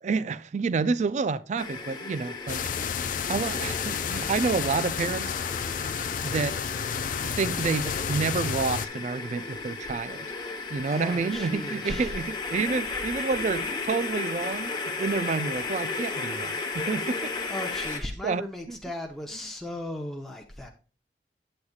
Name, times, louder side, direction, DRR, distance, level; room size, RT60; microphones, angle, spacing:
voice 1, 0.0-2.6 3.3-5.3 6.2-6.6 7.2-10.3 10.7-14.7 15.0-17.3 17.9-18.0 18.2-18.4 18.7-18.8, right 4 dB, 40° right, 0.3 m, -29 dB
sound 1, 1.6-18.0, left 3 dB, 25° left, 1.0 m, -34 dB
sound 2, 2.5-8.9, left 7 dB, 50° left, 0.4 m, -31 dB
voice 2, 10.9-12.1 17.5-20.7, left 1 dB, ahead, 0.7 m, -36 dB
8.5 x 7.9 x 2.3 m
head